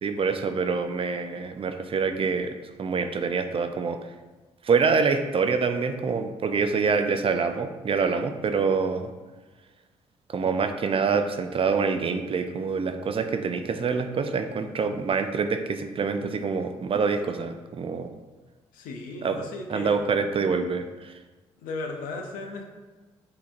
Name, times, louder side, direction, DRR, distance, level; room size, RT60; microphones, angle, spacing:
voice 1, 0.0-4.0 4.6-9.1 10.3-18.1 19.2-19.4 19.7-21.1, right 5 dB, 40° right, 7 dB, 0.4 m, -26 dB
voice 2, 18.7-20.0 21.6-22.6, left 3 dB, 70° left, 2 dB, 0.6 m, -36 dB
5.8 x 2.9 x 2.5 m, 1.2 s
hypercardioid pair, 45°, 15 cm